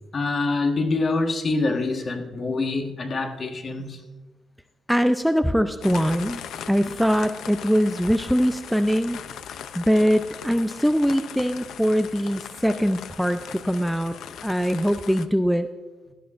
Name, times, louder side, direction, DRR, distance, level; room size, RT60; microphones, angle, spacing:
voice 1, 0.1-4.0, left 3 dB, 40° left, 4 dB, 1.4 m, -25 dB
voice 2, 4.9-6.4 6.7-9.2 9.7-14.2 14.4-15.7, equal, ahead, 8 dB, 0.4 m, -22 dB
sound 1, 5.8-15.3, left 8 dB, 75° left, 0.5 m, -39 dB
17.0 x 12.5 x 2.5 m, 1.2 s
cardioid pair, 120°, 0 cm